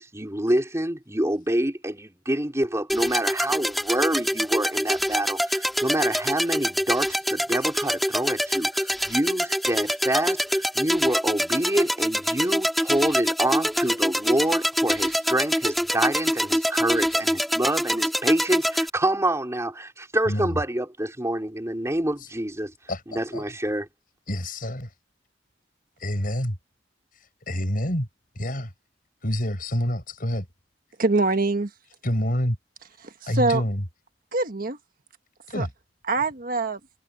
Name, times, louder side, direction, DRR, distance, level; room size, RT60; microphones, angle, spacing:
voice 1, 0.0-22.7 23.1-23.9, right 1 dB, 15° right, 4.2 m, -26 dB
sound 1, 2.9-18.9, equal, ahead, 2.9 m, -25 dB
voice 2, 20.3-20.6 22.9-23.0 23.3-23.4 24.3-24.9 26.0-26.6 27.5-28.1 28.4-28.7 29.2-30.5 32.0-32.6 33.3-33.8 35.5-35.7, equal, 50° left, 6.8 m, -27 dB
voice 3, 31.0-31.7 33.0-33.6 34.3-34.8 35.5-35.7 36.1-36.8, right 3 dB, 50° right, 1.4 m, -24 dB
head